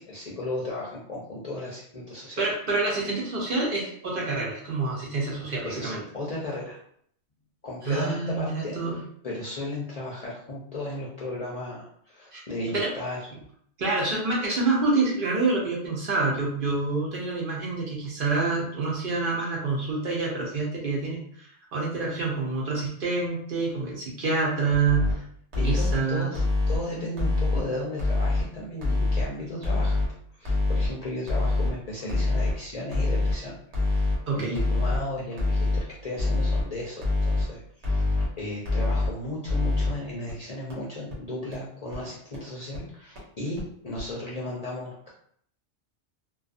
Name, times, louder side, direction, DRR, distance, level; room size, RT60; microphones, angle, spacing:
voice 1, 0.0-2.4 5.6-6.8 7.6-13.2 25.6-30.0 30.4-45.1, left 1 dB, 50° left, -5 dB, 0.5 m, -35 dB
voice 2, 2.4-6.0 7.8-9.0 12.3-12.4 12.7-12.9 13.8-25.2 25.6-26.3 34.3-34.6, right 3 dB, 55° right, -3 dB, 0.8 m, -27 dB
sound 1, 24.7-25.1 25.5-26.0 26.3-26.8 27.2-27.6 28.0-28.4 28.8-29.2 29.6-30.1 30.5-30.9 31.3-31.7 32.1-32.5 32.9-33.3 33.7-34.2 34.6-35.0 35.4-35.8 36.2-36.6 37.0-37.4 37.8-38.3 38.7-39.1 39.5-39.9 40.3-40.4 40.7-40.8 41.1-41.2 41.5-41.6 41.9-42.0 42.3-42.4 42.7-42.8 43.2-43.3 43.6-43.7 44.0-44.1, left 2 dB, 80° right, 1.2 m, -24 dB
2.3 x 2.3 x 2.5 m, 0.64 s
omnidirectional pair, 1.2 m